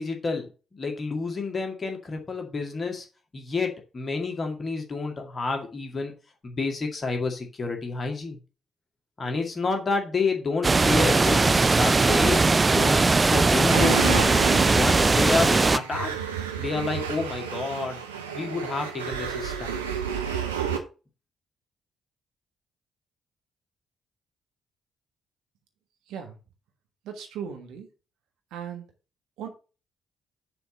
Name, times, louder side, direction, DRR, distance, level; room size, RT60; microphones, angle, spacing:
voice 1, 0.0-3.1 3.3-6.1 6.4-8.4 9.2-12.4 12.7-14.4 14.7-16.1 16.6-18.0 18.3-19.7, left 4 dB, 35° left, 2.2 m, -29 dB
sound 1, 10.6-15.8, right 3 dB, 25° right, 0.4 m, -20 dB
sound 2, 13.7-20.8, right 8 dB, 80° right, 0.8 m, -31 dB
voice 2, 27.0-27.9 28.5-28.8 29.4-29.5, right 8 dB, 65° right, 1.4 m, -37 dB
6.9 x 4.2 x 6.4 m
figure-of-eight pair, 40°, 0 cm